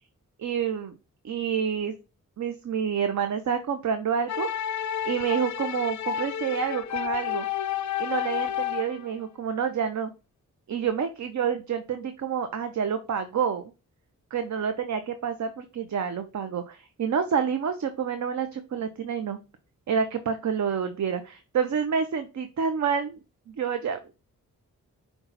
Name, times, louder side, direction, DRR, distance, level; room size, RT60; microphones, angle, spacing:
voice 1, 0.4-0.9 1.2-1.9 2.4-4.6 5.0-7.5 8.0-10.1 10.7-13.6 14.3-19.4 19.9-23.2 23.5-24.2, right 7 dB, 55° right, 8 dB, 0.6 m, -28 dB
sound 1, 4.3-9.1, left 10 dB, 55° left, 0.4 m, -30 dB
5.5 x 2.3 x 3.9 m, 0.29 s
cardioid pair, 45°, 35 cm